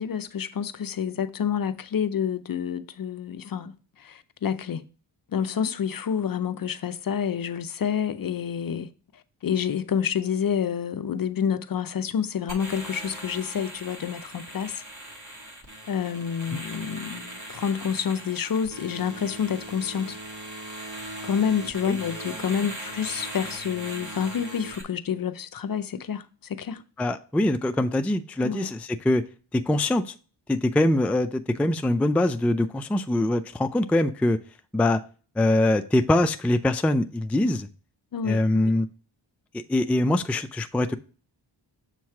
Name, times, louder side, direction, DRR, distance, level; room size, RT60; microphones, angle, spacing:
voice 1, 0.0-4.8 5.3-8.9 9.4-14.8 15.9-20.2 21.2-26.8 28.4-28.7 38.1-38.7, left 7 dB, 45° left, 0.6 m, -28 dB
sound 1, 12.5-24.8, right 1 dB, 40° right, 1.9 m, -39 dB
voice 2, 27.0-29.2 29.5-30.1 30.5-34.4 34.7-35.0 35.4-37.7 38.2-38.9 39.5-41.0, left 1 dB, 5° left, 0.3 m, -23 dB
7.3 x 3.1 x 5.8 m
cardioid pair, 65°, 48 cm